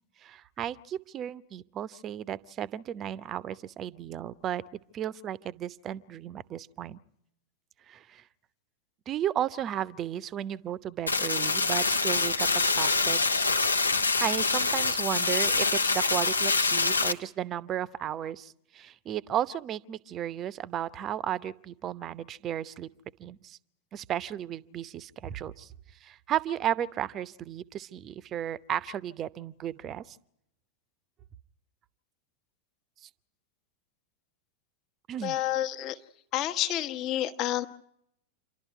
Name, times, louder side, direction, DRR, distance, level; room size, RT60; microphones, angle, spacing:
voice 1, 0.2-4.6 4.9-7.0 7.9-8.2 9.1-13.2 14.2-22.9 23.2-23.6 23.9-25.7 26.0-30.2 33.0-33.1 35.1-35.4, right 10 dB, 30° right, 0.8 m, -34 dB
sound 1, 11.1-17.1, left 3 dB, 80° left, 1.0 m, -25 dB
voice 2, 35.2-36.0 36.3-37.7, left 13 dB, 35° left, 1.2 m, -29 dB
28.5 x 12.0 x 9.2 m
figure-of-eight pair, 90°, 0 cm